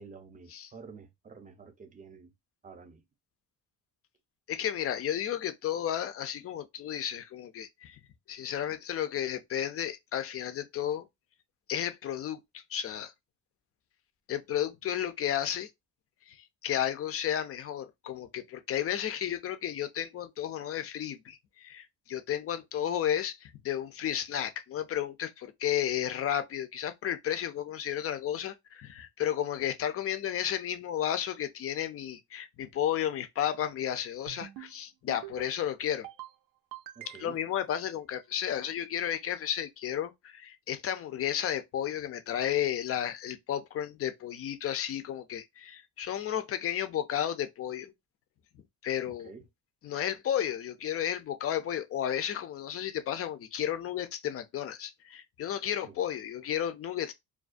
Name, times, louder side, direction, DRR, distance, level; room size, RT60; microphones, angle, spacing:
voice 1, 0.0-2.3 2.6-3.0 37.0-37.4 49.0-49.4 55.8-55.9, right 5 dB, 20° right, 0.5 m, -49 dB
voice 2, 4.5-8.0 8.3-11.1 11.7-13.1 14.3-15.7 16.3-36.1 37.2-47.9 48.8-49.3 49.8-57.1, left 10 dB, 40° left, 0.4 m, -33 dB
sound 1, 34.3-34.7 35.1-35.5 35.9-36.3 36.7-37.5, right 12 dB, 85° right, 0.5 m, -45 dB
2.3 x 2.2 x 2.4 m
cardioid pair, 105°, 37 cm